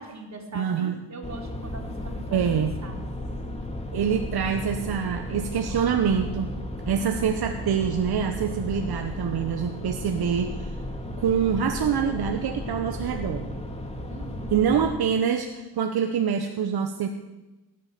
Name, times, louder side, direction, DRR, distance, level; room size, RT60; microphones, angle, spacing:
voice 1, 0.0-3.0 14.1-14.7, right 2 dB, 45° right, 1 dB, 3.7 m, -41 dB
voice 2, 0.5-0.9 2.3-2.7 3.9-6.5 6.9-10.7 11.2-13.5 14.5-17.1, right 7 dB, 65° right, 5 dB, 1.1 m, -25 dB
sound 1, 1.2-15.0, left 1 dB, 15° left, 2.4 m, -34 dB
18.0 x 8.4 x 6.7 m, 1.1 s
cardioid pair, 65°, 40 cm